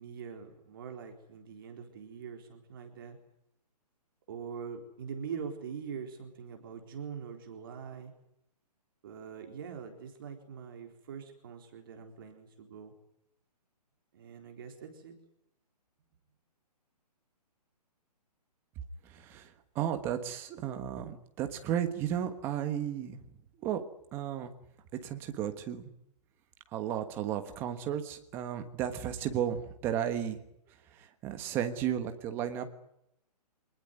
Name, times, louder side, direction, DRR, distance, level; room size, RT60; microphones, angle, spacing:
voice 1, 0.0-3.2 4.3-8.1 9.0-12.9 14.1-15.1, right 6 dB, 35° right, 4 dB, 4.0 m, -43 dB
voice 2, 19.1-23.2 23.6-23.8 24.1-24.5 25.0-25.9 26.7-30.4 31.0-32.7, right 10 dB, 10° right, 8 dB, 1.3 m, -34 dB
26.0 x 20.0 x 9.6 m, 0.79 s
hypercardioid pair, 175°, 21 cm